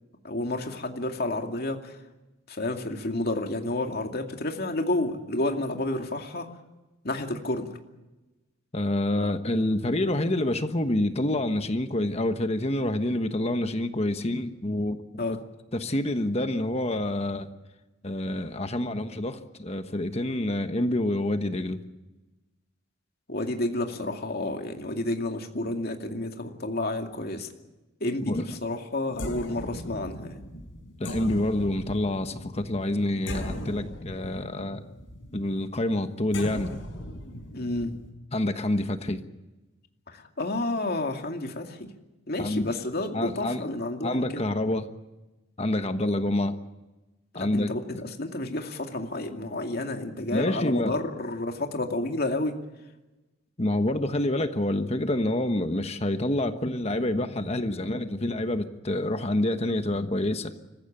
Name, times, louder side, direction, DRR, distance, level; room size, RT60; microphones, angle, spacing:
voice 1, 0.2-2.0 2.5-6.5 7.0-7.8 9.2-9.3 15.2-15.4 23.3-27.5 28.0-30.5 37.5-37.9 40.1-41.9 42.3-44.4 47.3-52.6, left 2 dB, 50° left, 3 dB, 2.4 m, -30 dB
voice 2, 8.7-15.0 15.7-17.5 18.0-21.8 28.3-28.4 31.0-34.8 35.3-36.7 38.3-39.2 42.4-42.7 43.1-43.6 44.0-44.9 45.6-46.6 47.3-47.7 50.3-51.0 53.6-60.6, left 1 dB, 30° left, 8 dB, 1.2 m, -27 dB
sound 1, 29.1-38.1, left 1 dB, 65° left, 5.0 m, -39 dB
25.5 x 15.5 x 9.1 m, 1.1 s
head